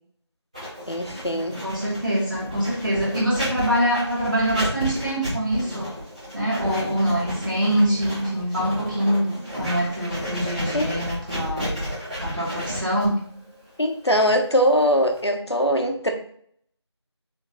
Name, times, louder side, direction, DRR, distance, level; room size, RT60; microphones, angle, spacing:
Writing, 0.5-15.3, equal, 15° right, 2.4 m, -32 dB
voice 1, 0.9-1.6 10.7-10.9 13.8-16.1, equal, 65° left, 4 dB, 1.3 m, -21 dB
voice 2, 1.6-5.9 6.3-11.7 12.2-13.2, equal, 45° right, -7 dB, 2.6 m, -24 dB
6.0 x 3.9 x 4.0 m, 0.63 s
figure-of-eight pair, 175°, 15 cm